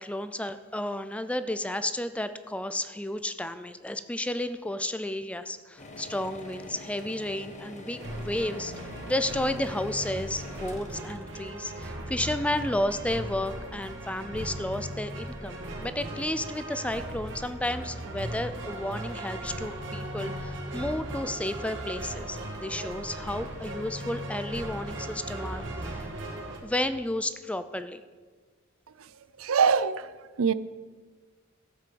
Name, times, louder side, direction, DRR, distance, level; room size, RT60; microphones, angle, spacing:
voice 1, 0.0-26.0 26.6-28.0, left 1 dB, 5° left, 0.5 m, -32 dB
sound 1, 5.8-12.7, left 2 dB, 35° left, 1.4 m, -45 dB
sound 2, 8.0-26.6, right 1 dB, 60° right, 2.4 m, -37 dB
voice 2, 29.4-30.1 30.4-30.5, right 6 dB, 80° right, 0.5 m, -23 dB
14.0 x 7.5 x 7.0 m
head